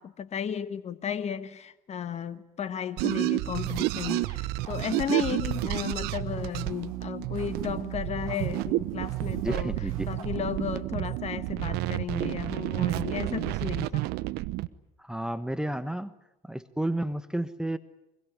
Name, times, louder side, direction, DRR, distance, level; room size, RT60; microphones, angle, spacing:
voice 1, 0.0-9.7 10.1-14.1, left 8 dB, 40° left, 13 dB, 1.3 m, -34 dB
sound 1, 3.0-14.7, right 18 dB, 65° right, 1.0 m, -30 dB
sound 2, 3.7-10.9, right 7 dB, 85° right, 4.8 m, -53 dB
voice 2, 9.4-10.1 15.0-16.1 16.4-17.8, right 1 dB, 5° right, 12 dB, 1.2 m, -31 dB
24.5 x 22.5 x 9.9 m, 0.95 s
hypercardioid pair, 70°, 18 cm